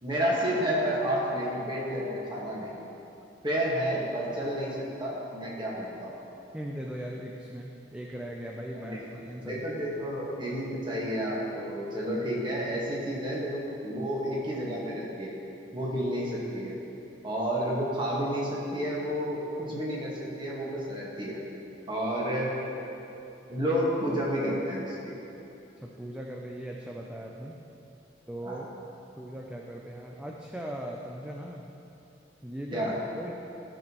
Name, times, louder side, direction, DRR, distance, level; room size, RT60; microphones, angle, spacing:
voice 1, 0.0-2.8 3.4-6.1 8.8-9.1 9.4-15.4 15.7-16.8 17.2-21.4 21.9-22.9 23.5-25.1 28.4-28.6 32.7-32.9, equal, 25° right, -5 dB, 1.7 m, -30 dB
voice 2, 6.5-9.7 25.8-27.6 28.3-28.7 29.2-31.7 32.4-32.9 33.2-33.3, right 1 dB, 5° right, -1 dB, 0.4 m, -39 dB
13.0 x 6.0 x 3.1 m, 2.9 s
head